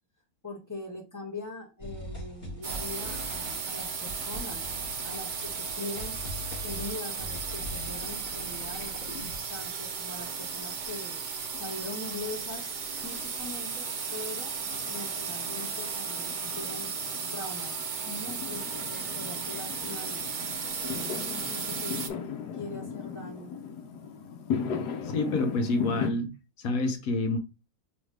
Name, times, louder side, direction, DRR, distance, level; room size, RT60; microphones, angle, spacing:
voice 1, 0.4-4.6 5.0-6.1 6.6-8.9 9.5-12.7 13.0-13.8 14.1-14.5 14.9-16.9 17.3-17.7 18.0-20.3 20.8-21.9 22.5-23.5, left 2 dB, 10° left, 1.3 m, -41 dB
sound 1, 1.8-9.4, left 1 dB, 40° left, 3.0 m, -42 dB
sound 2, 2.6-22.1, right 5 dB, 70° right, 0.4 m, -35 dB
Fireworks, 11.5-26.1, left 6 dB, 90° left, 1.3 m, -38 dB
voice 2, 25.1-26.3 26.6-27.4, left 2 dB, 65° left, 1.2 m, -27 dB
5.1 x 3.2 x 3.2 m
omnidirectional pair, 1.7 m